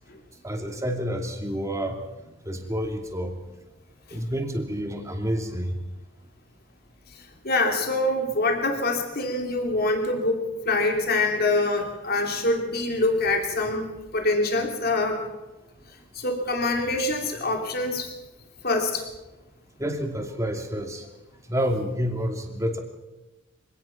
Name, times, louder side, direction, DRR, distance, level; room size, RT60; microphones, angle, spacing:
voice 1, 0.4-2.0 2.4-3.4 4.1-5.7 19.8-21.1 21.5-22.8, equal, 15° right, 3 dB, 2.7 m, -29 dB
voice 2, 7.4-13.9 14.1-15.2 16.1-18.1 18.6-19.0, left 2 dB, 50° left, 3 dB, 3.0 m, -25 dB
24.5 x 18.0 x 6.0 m, 1.1 s
head